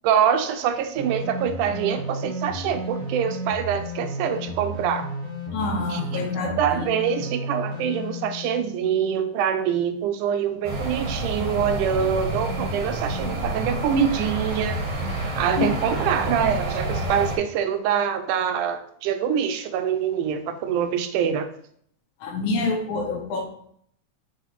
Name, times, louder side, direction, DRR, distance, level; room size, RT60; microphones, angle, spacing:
voice 1, 0.0-5.1 5.9-14.8 15.4-21.5, right 8 dB, 80° right, 8 dB, 2.1 m, -25 dB
sound 1, 0.9-9.6 11.9-13.8, equal, 65° right, 0.8 m, -33 dB
voice 2, 5.5-6.9 15.6-15.7 22.2-23.4, left 3 dB, 75° left, 1 dB, 2.4 m, -27 dB
sound 2, 10.6-17.4, right 1 dB, 45° right, 1.0 m, -29 dB
7.4 x 3.4 x 4.2 m, 0.64 s
omnidirectional pair, 3.6 m